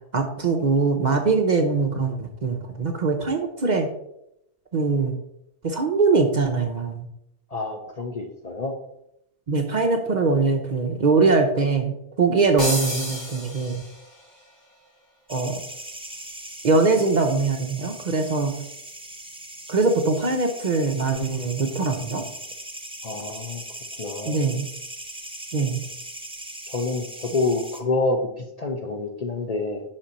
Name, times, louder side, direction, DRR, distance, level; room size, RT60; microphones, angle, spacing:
voice 1, 0.1-3.9 4.7-5.1 5.6-7.1 9.5-11.9 12.2-13.8 15.3-15.6 16.6-18.5 19.7-22.2 24.3-24.7 25.5-25.8, right 4 dB, 45° right, 4 dB, 0.7 m, -22 dB
voice 2, 7.5-8.8 23.0-23.6 24.0-24.4 26.7-29.8, left 3 dB, 45° left, 3 dB, 0.6 m, -27 dB
sound 1, 12.6-14.2, equal, 15° left, 1.9 m, -30 dB
sound 2, 15.3-27.8, right 1 dB, 10° right, 0.4 m, -39 dB
5.8 x 4.3 x 5.1 m, 0.80 s
omnidirectional pair, 1.2 m